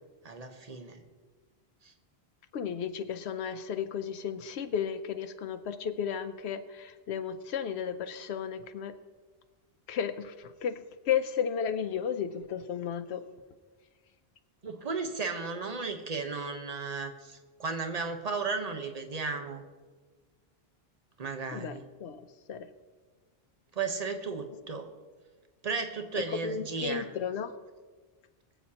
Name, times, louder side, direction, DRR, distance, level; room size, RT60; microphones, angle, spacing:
voice 1, 0.2-1.0 1.8-1.9 14.6-19.6 21.2-21.8 23.7-24.9 25.6-27.1, right 4 dB, 40° right, 5 dB, 1.0 m, -35 dB
voice 2, 2.5-8.9 9.9-13.2 21.5-22.2 22.5-22.7 26.2-27.5, left 8 dB, 90° left, 8 dB, 0.9 m, -34 dB
23.5 x 8.1 x 2.9 m, 1.4 s
omnidirectional pair, 1.1 m